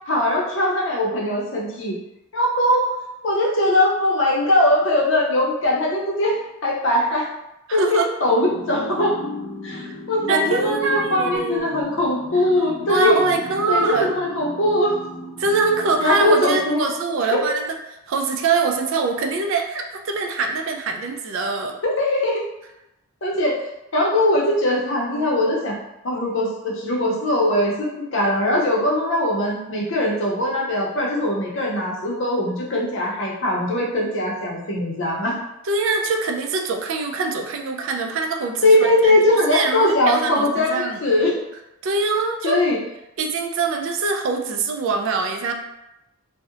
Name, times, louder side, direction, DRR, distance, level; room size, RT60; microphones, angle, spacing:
voice 1, 0.1-2.0 2.3-2.9 3.2-7.3 7.7-9.2 9.6-13.2 13.7-15.0 16.0-16.9 17.3-17.4 21.8-22.4 23.2-23.5 23.9-25.7 26.0-35.4 38.6-41.4 42.4-42.8, left 1 dB, 60° left, -3 dB, 0.6 m, -20 dB
voice 2, 7.7-8.1 10.3-11.8 12.9-14.1 15.4-17.6 18.1-21.8 35.7-39.2 39.5-41.0 41.8-42.6 43.2-45.5, right 3 dB, 65° right, 3 dB, 0.3 m, -23 dB
sound 1, 8.3-17.0, left 2 dB, 5° right, 1.2 m, -36 dB
2.6 x 2.1 x 2.4 m, 0.89 s
head